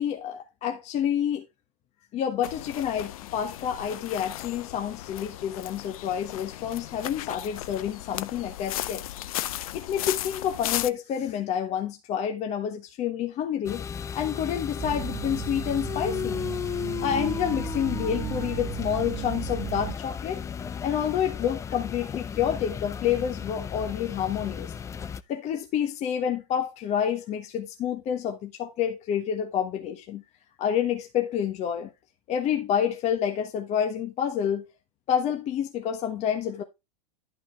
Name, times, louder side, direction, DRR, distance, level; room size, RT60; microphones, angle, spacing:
voice 1, 0.0-1.4 2.1-9.0 9.7-13.8 14.1-16.5 17.0-20.4 20.8-24.7 25.3-30.2 30.6-31.9 32.3-34.7 35.1-36.6, left 9 dB, 35° left, 1.2 m, -28 dB
sound 1, 2.4-10.9, left 14 dB, 65° left, 0.6 m, -35 dB
sound 2, 13.7-25.2, left 7 dB, 15° left, 0.4 m, -35 dB
sound 3, 14.8-20.0, right 15 dB, 35° right, 0.6 m, -36 dB
11.0 x 5.7 x 3.4 m
hypercardioid pair, 110°, 19 cm